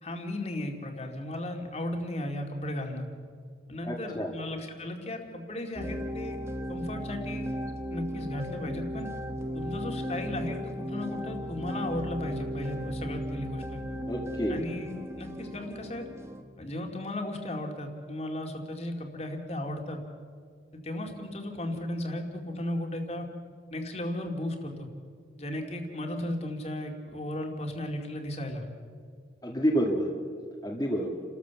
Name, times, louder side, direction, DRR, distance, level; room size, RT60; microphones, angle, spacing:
voice 1, 0.0-3.1 3.7-6.4 6.7-7.5 7.9-9.1 9.5-13.8 14.5-14.9 15.2-16.1 16.6-20.0 20.7-23.3 23.7-24.9 25.4-28.7, left 1 dB, 35° left, 4 dB, 2.3 m, -35 dB
voice 2, 3.8-4.3 14.1-14.6 29.4-30.1 30.6-31.1, equal, 20° left, -2 dB, 1.7 m, -28 dB
sound 1, 5.7-16.4, equal, 15° right, 1.1 m, -36 dB
30.0 x 13.5 x 7.1 m, 2.1 s
head